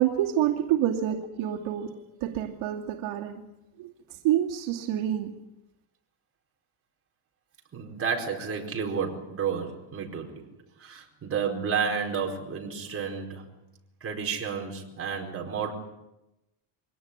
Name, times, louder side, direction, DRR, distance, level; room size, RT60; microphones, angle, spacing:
voice 1, 0.0-1.9 2.2-3.5 3.8-5.4, right 11 dB, 70° right, 2 dB, 2.6 m, -27 dB
voice 2, 7.7-10.4 10.8-13.4 14.0-15.7, right 6 dB, 25° right, 0 dB, 4.6 m, -31 dB
23.5 x 18.0 x 9.8 m, 0.93 s
cardioid pair, 155°, 49 cm